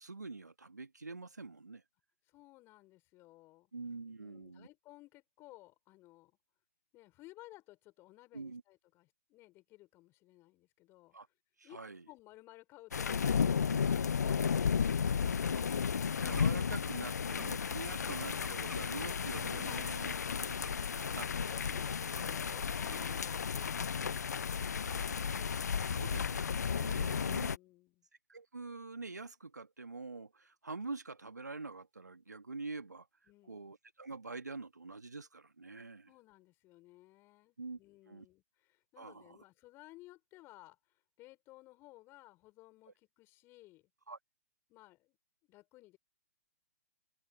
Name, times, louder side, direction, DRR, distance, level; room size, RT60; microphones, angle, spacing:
voice 1, 0.0-1.8 3.7-4.7 8.3-8.6 11.1-11.3 11.6-12.0 13.7-13.8 16.2-20.1 20.5-20.6 20.9-21.5 24.9-25.0 25.9-27.5 28.3-33.1 33.4-36.1 37.6-37.8 38.1-38.2 39.0-39.4 44.1-44.2, right 3 dB, 85° right, 1.6 m, -45 dB
voice 2, 2.3-3.7 4.2-6.4 6.9-11.2 11.6-11.8 12.1-15.7 19.7-20.4 20.7-26.2 26.9-28.1 33.3-33.7 35.8-43.9 44.7-45.2 45.5-46.0, left 19 dB, 25° left, 5.9 m, -58 dB
sound 1, 12.9-27.6, left 6 dB, 75° left, 0.4 m, -33 dB
sound 2, 16.2-20.2 20.5-21.0 21.4-21.5 21.7-21.9 22.2-23.1, right 3 dB, 5° right, 1.2 m, -56 dB
figure-of-eight pair, 125°, 9 cm